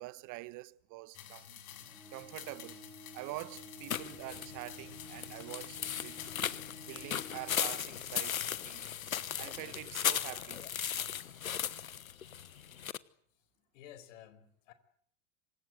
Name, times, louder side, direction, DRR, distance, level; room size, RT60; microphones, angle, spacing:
voice 1, 0.0-1.6 2.1-2.8 3.1-6.3 6.9-8.9 9.4-10.6 11.2-11.3, right 21 dB, 45° right, 1.3 m, -46 dB
sound 1, 1.1-9.8, left 11 dB, 50° left, 7.1 m, -51 dB
Bowed string instrument, 1.8-8.5, right 1 dB, 5° left, 7.8 m, -54 dB
sound 2, 3.9-13.0, left 9 dB, 85° left, 1.2 m, -37 dB
voice 2, 13.3-14.7, left 11 dB, 65° left, 4.9 m, -54 dB
27.0 x 24.5 x 8.0 m
hypercardioid pair, 85°, 40 cm